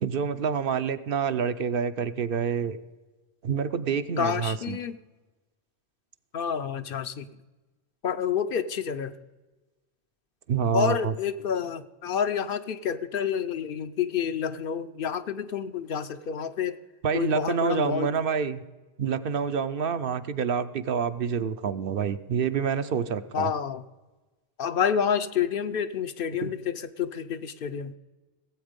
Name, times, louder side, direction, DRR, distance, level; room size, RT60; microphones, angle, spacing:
voice 1, 0.0-2.8 3.4-4.8 10.5-11.1 17.0-18.6 19.0-23.5 26.4-26.5, right 6 dB, 65° right, 11 dB, 0.7 m, -27 dB
voice 2, 4.2-5.0 6.3-7.3 8.0-9.1 10.7-16.8 17.1-18.1 23.3-23.8 24.6-27.9, left 7 dB, 65° left, 11 dB, 0.7 m, -29 dB
16.5 x 8.0 x 5.1 m, 1.2 s
omnidirectional pair, 1.1 m